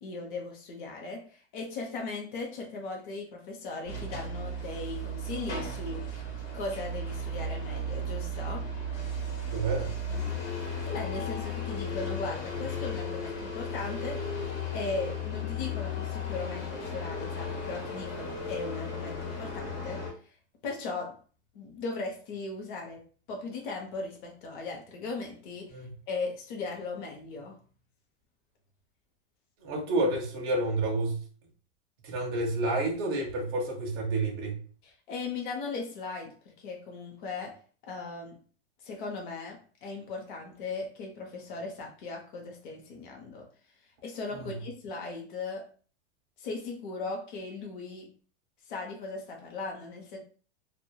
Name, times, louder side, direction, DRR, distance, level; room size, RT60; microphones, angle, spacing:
voice 1, 0.0-6.0 6.5-8.7 10.8-14.2 14.7-20.0 20.6-21.2 21.5-23.0 23.3-27.6 34.8-37.6 37.8-38.4 38.8-43.5 44.0-45.7 46.4-48.1 48.7-50.2, left 3 dB, 50° left, 1 dB, 0.6 m, -38 dB
sound 1, 3.8-20.1, left 1 dB, 80° left, 1.0 m, -35 dB
voice 2, 9.5-9.9 25.7-25.9 29.6-31.2 32.0-34.6 44.3-44.6, right 2 dB, 25° right, -2 dB, 0.3 m, -29 dB
2.1 x 2.1 x 2.7 m, 0.41 s
supercardioid pair, 170°, 34 cm